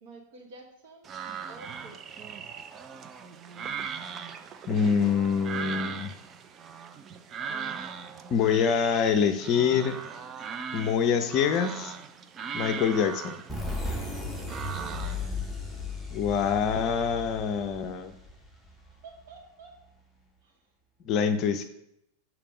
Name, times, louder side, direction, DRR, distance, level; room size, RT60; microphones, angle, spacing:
voice 1, 0.0-1.1 1.4-2.0 14.8-15.2 19.0-19.7 20.4-20.6, right 3 dB, 55° right, 1 dB, 1.3 m, -49 dB
sound 1, 1.0-15.3, right 6 dB, 25° right, 0.4 m, -39 dB
voice 2, 4.7-6.1 8.3-10.0 10.7-11.9 12.5-13.4 16.1-18.1 21.0-21.6, left 7 dB, 35° left, 7 dB, 0.5 m, -25 dB
sound 2, 13.5-19.0, left 3 dB, ahead, 1.0 m, -36 dB
6.7 x 3.0 x 5.0 m, 0.79 s
figure-of-eight pair, 90°, 0 cm